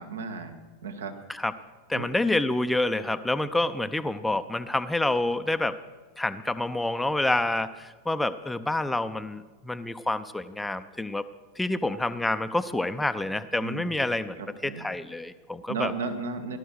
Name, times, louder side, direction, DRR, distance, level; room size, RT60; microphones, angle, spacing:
voice 1, 0.0-1.1 1.9-2.1 13.6-13.9 14.4-14.8 15.7-16.6, right 4 dB, 65° right, 7 dB, 1.7 m, -34 dB
voice 2, 1.9-5.8 6.2-11.2 11.6-15.9, left 2 dB, 5° left, 11 dB, 0.6 m, -28 dB
18.0 x 12.5 x 6.4 m, 1.3 s
figure-of-eight pair, 90°, 0 cm